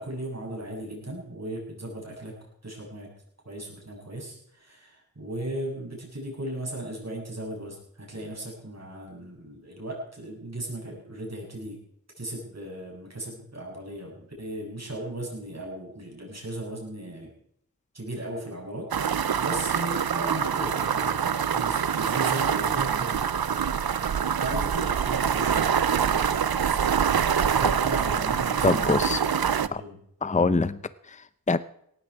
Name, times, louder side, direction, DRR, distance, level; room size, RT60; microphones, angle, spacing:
voice 1, 0.0-2.3 2.6-3.1 3.4-11.8 12.2-17.3 17.9-26.8 27.4-30.0, right 1 dB, 45° right, -1 dB, 7.6 m, -37 dB
sound 1, 18.9-29.7, right 7 dB, 85° right, 0.7 m, -25 dB
voice 2, 28.6-29.2 29.7-29.8 30.2-30.8 31.1-31.6, left 3 dB, 20° left, 15 dB, 0.6 m, -24 dB
18.0 x 15.0 x 4.8 m, 0.70 s
wide cardioid pair, 80°, 35 cm